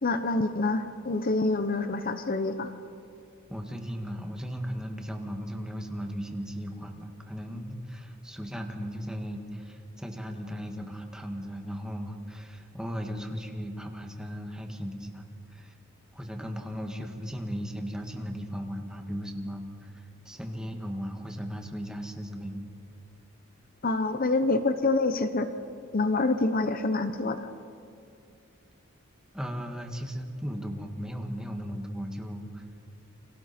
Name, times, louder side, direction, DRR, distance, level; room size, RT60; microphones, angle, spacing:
voice 1, 0.0-2.7 23.8-25.5 25.9-27.4, left 3 dB, 45° left, 9 dB, 0.9 m, -26 dB
voice 2, 3.5-15.3 15.5-15.8 16.1-22.7 29.3-32.6, equal, 5° right, 3 dB, 1.9 m, -36 dB
29.5 x 24.5 x 4.4 m, 2.6 s
head